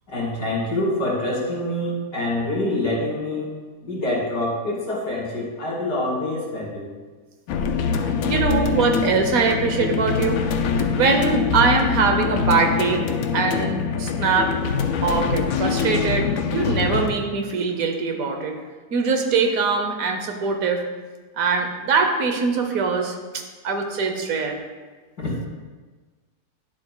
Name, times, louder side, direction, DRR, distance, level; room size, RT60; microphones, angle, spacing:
voice 1, 0.1-3.5 3.8-6.9 25.2-25.3, left 1 dB, 85° left, -5 dB, 3.1 m, -26 dB
sound 1, 7.5-17.1, left 5 dB, 70° left, 1.0 m, -24 dB
voice 2, 8.0-10.4 10.9-13.0 13.3-14.5 15.0-18.6 18.9-20.8 21.4-24.6, right 4 dB, 65° right, 4 dB, 1.2 m, -22 dB
10.5 x 7.4 x 2.3 m, 1.3 s
omnidirectional pair, 1.8 m